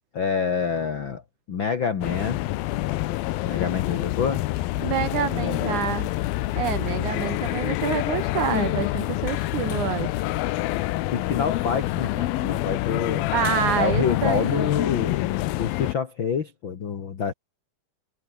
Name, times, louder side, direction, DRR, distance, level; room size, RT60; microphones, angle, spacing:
voice 1, 0.1-1.2 1.5-2.4 3.4-4.4 11.1-13.3 13.7-17.3, left 6 dB, 55° left, 1.3 m, -27 dB
sound 1, 2.0-15.9, left 17 dB, 75° left, 2.5 m, -27 dB
voice 2, 4.8-6.1 6.6-10.1 13.3-14.7, right 10 dB, 75° right, 1.8 m, -27 dB
omnidirectional pair, 4.8 m